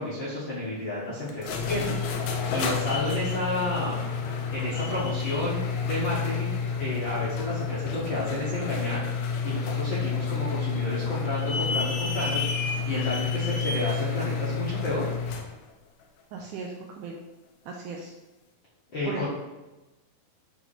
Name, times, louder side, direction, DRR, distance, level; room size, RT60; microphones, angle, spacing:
voice 1, 0.0-4.0 4.5-6.5 6.8-9.0 9.4-15.1 18.9-19.3, left 1 dB, 60° left, -9 dB, 1.3 m, -31 dB
sound 1, 1.3-15.5, left 5 dB, 80° left, 2.2 m, -29 dB
voice 2, 16.3-17.2 17.7-18.1 19.1-19.3, right 4 dB, 80° right, 0 dB, 1.8 m, -37 dB
8.1 x 2.8 x 4.1 m, 1.1 s
omnidirectional pair, 4.0 m